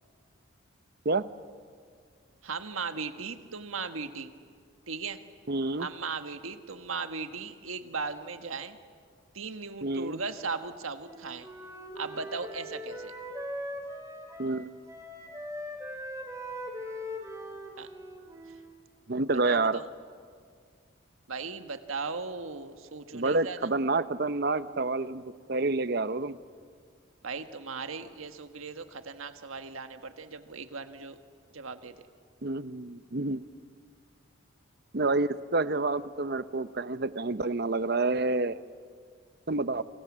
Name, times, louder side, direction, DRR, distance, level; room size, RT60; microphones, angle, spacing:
voice 1, 2.4-4.3 4.9-5.2 5.8-8.8 9.3-11.5 11.9-13.1 17.8-17.9 19.4-19.9 21.3-23.7 27.2-31.2 31.5-32.1, right 4 dB, 90° right, 8 dB, 1.6 m, -37 dB
voice 2, 5.5-5.9 9.8-10.2 14.4-14.7 19.1-19.8 23.1-25.2 25.5-26.4 32.4-33.4 34.9-38.6 39.5-39.8, right 3 dB, 50° right, 13 dB, 0.8 m, -28 dB
Wind instrument woodwind instrument, 11.0-14.6 14.9-18.8, equal, 15° right, 3.3 m, -40 dB
30.0 x 26.5 x 7.5 m, 2.1 s
head